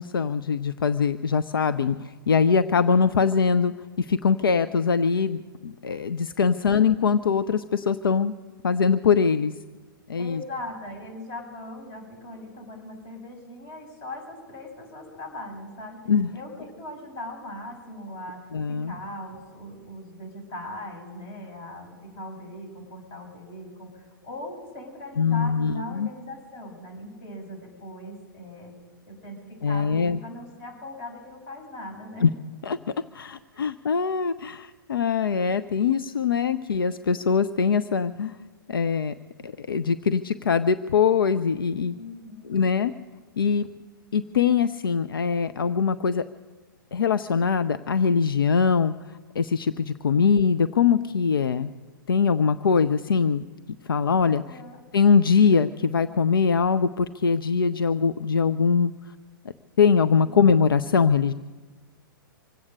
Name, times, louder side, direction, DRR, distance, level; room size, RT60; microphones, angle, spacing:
voice 1, 0.0-8.3 8.6-9.5 10.1-10.4 16.1-16.3 18.5-18.9 25.2-26.1 29.6-30.2 32.2-32.3 32.7-32.8 33.1-38.4 38.7-39.1 39.4-41.9 42.5-42.9 43.4-43.7 44.1-46.2 46.9-48.9 49.4-51.7 52.1-53.5 53.9-54.6 54.9-58.9 59.8-61.3, left 6 dB, 75° left, 13 dB, 0.5 m, -22 dB
voice 2, 10.1-16.0 16.3-28.7 29.0-32.3 33.5-33.7 41.9-42.6 54.4-54.8, left 1 dB, 40° left, 1 dB, 6.9 m, -40 dB
25.0 x 8.6 x 6.6 m, 1.3 s
hypercardioid pair, 120°, 12 cm